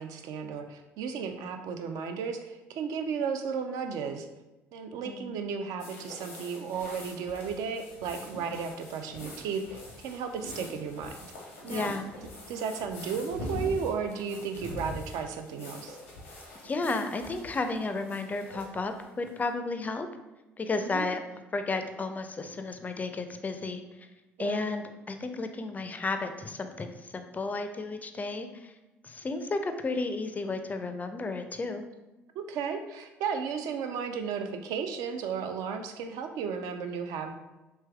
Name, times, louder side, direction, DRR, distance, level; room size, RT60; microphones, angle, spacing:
voice 1, 0.0-4.3 4.7-11.2 11.6-11.9 12.5-16.0 20.8-21.1 24.4-24.6 32.5-37.3, right 6 dB, 65° right, 6 dB, 0.4 m, -34 dB
sound 1, 5.8-19.4, left 1 dB, 90° left, 0.7 m, -43 dB
voice 2, 11.7-12.1 16.6-20.1 20.6-21.2 21.5-23.8 24.4-28.7 29.0-31.8, left 3 dB, 25° left, 7 dB, 0.4 m, -33 dB
3.3 x 2.9 x 2.3 m, 1.0 s
hypercardioid pair, 60°, 7 cm